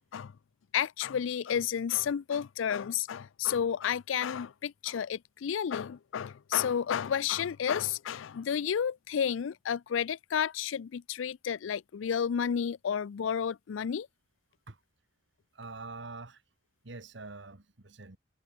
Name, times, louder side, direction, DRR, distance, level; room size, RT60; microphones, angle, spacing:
voice 1, 0.7-14.1, left 8 dB, 75° left, 0.4 m, -31 dB
voice 2, 15.5-16.4 16.8-18.2, right 3 dB, 60° right, 1.6 m, -45 dB
head